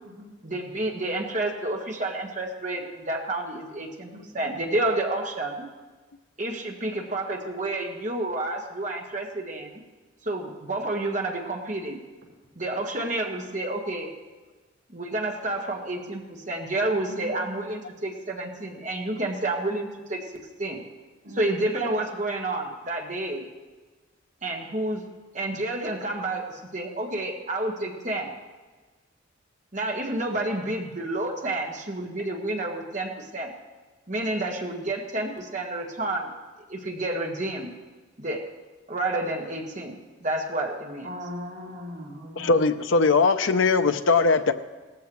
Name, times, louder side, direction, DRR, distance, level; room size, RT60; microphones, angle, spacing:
voice 1, 0.4-5.7 6.4-9.8 10.2-12.0 12.6-14.1 14.9-20.2 20.6-20.8 21.4-23.5 24.4-25.0 25.3-28.3 29.7-33.5 34.1-36.3 36.7-37.7 38.2-38.4 38.9-41.1, right 2 dB, 40° right, 1 dB, 1.6 m, -30 dB
voice 2, 4.1-4.6 17.1-17.3 21.2-21.7 41.0-42.7, left 1 dB, 75° right, -4 dB, 4.7 m, -39 dB
voice 3, 42.4-44.5, left 4 dB, 80° left, 8 dB, 0.6 m, -20 dB
17.5 x 14.0 x 3.1 m, 1.3 s
head